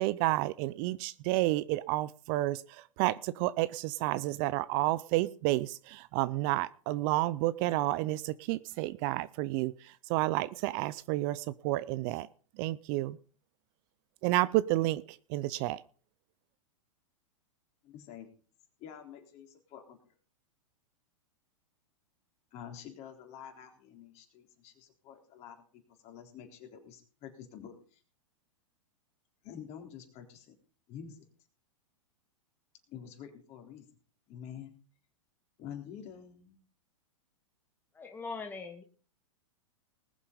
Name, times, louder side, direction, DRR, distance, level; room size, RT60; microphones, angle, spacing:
voice 1, 0.0-12.3 12.6-13.2 14.2-15.8, right 18 dB, 45° right, 18 dB, 0.6 m, -30 dB
voice 2, 17.8-18.3 18.8-20.1 22.5-28.0 29.4-30.5 30.9-31.2 32.9-33.9 34.3-34.7 35.6-36.6, left 8 dB, 40° left, 4 dB, 3.7 m, -48 dB
voice 3, 37.9-38.8, left 4 dB, 10° left, 4 dB, 1.3 m, -41 dB
20.0 x 7.3 x 5.3 m, 0.40 s
hypercardioid pair, 110°, 17 cm